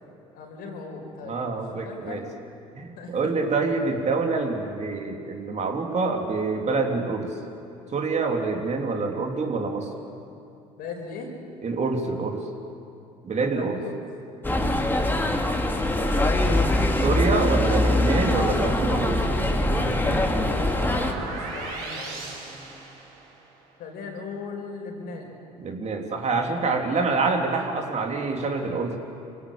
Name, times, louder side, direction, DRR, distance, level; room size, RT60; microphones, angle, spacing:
voice 1, 0.3-1.6 1.8-2.2 3.0-3.3 10.8-11.3 13.5-14.0 16.0-16.7 20.9-22.6 23.8-25.3 26.9-27.0, left 4 dB, 65° left, 1 dB, 5.2 m, -38 dB
voice 2, 1.2-2.2 2.7-7.3 7.9-9.9 11.6-12.5 13.2-13.8 14.5-14.8 17.0-19.3 25.6-29.0, right 3 dB, 45° right, 2 dB, 3.3 m, -26 dB
sound 1, 14.4-21.1, left 1 dB, 10° left, 2.5 m, -23 dB
sound 2, 18.7-23.5, right 3 dB, 80° right, 5.3 m, -36 dB
25.0 x 17.0 x 8.8 m, 2.7 s
hypercardioid pair, 65°, 16 cm